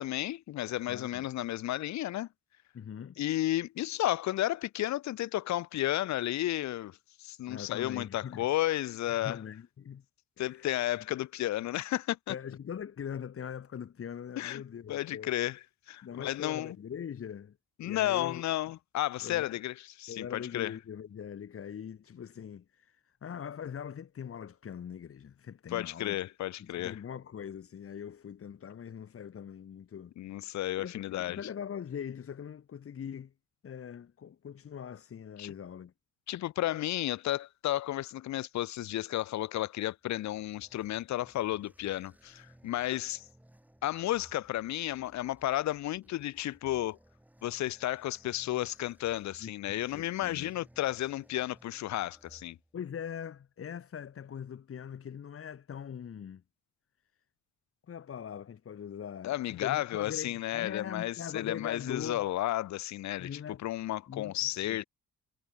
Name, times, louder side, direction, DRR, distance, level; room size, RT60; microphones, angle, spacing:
voice 1, 0.0-2.3 3.2-9.4 10.4-12.3 14.4-14.6 14.9-15.6 15.9-16.8 17.8-20.7 25.7-27.0 30.2-31.4 35.4-35.5 36.3-43.3 43.8-47.0 47.4-52.6 59.2-64.8, left 14 dB, 65° left, 0.7 m, -33 dB
voice 2, 0.9-1.2 2.7-3.2 7.5-8.5 9.2-10.0 10.5-10.7 12.3-15.3 16.0-18.4 19.2-19.5 20.1-26.2 26.6-30.5 30.8-33.3 33.6-35.9 49.4-50.5 52.7-56.4 57.9-62.3 63.2-63.6 64.1-64.8, left 8 dB, 50° left, 1.8 m, -42 dB
sound 1, 40.0-53.0, right 1 dB, 5° right, 5.4 m, -62 dB
cardioid pair, 90°, 30 cm